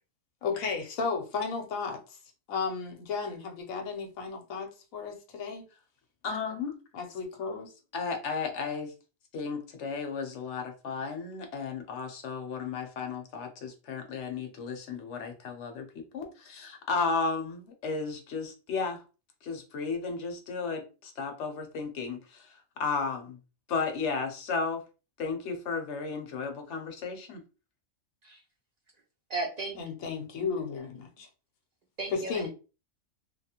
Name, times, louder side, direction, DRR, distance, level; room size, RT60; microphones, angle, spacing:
voice 1, 0.4-2.0 2.5-5.6 6.9-7.7 29.8-31.3 32.1-32.5, left 5 dB, 90° left, 1.1 m, -34 dB
voice 2, 6.2-6.7 7.9-8.9 9.3-19.0 19.4-22.5 22.8-23.4 23.7-24.8 25.2-27.4, left 4 dB, 65° left, 1.0 m, -34 dB
voice 3, 29.3-29.8 32.0-32.4, right 3 dB, 75° right, 0.3 m, -34 dB
2.9 x 2.4 x 2.8 m
omnidirectional pair, 1.4 m